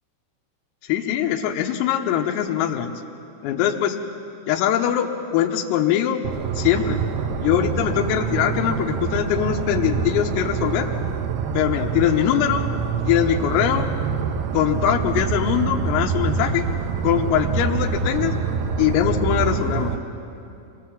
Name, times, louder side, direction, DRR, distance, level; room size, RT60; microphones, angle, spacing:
voice 1, 0.8-2.9 3.4-4.0 4.5-6.2 6.6-7.0 7.4-10.9 11.6-12.7 13.1-13.9 14.5-16.7 17.0-18.4 18.8-19.9, left 10 dB, 85° left, 3 dB, 3.8 m, -22 dB
sound 1, 6.2-20.0, right 6 dB, 80° right, 2.3 m, -26 dB
25.0 x 21.0 x 7.3 m, 2.6 s
omnidirectional pair, 5.9 m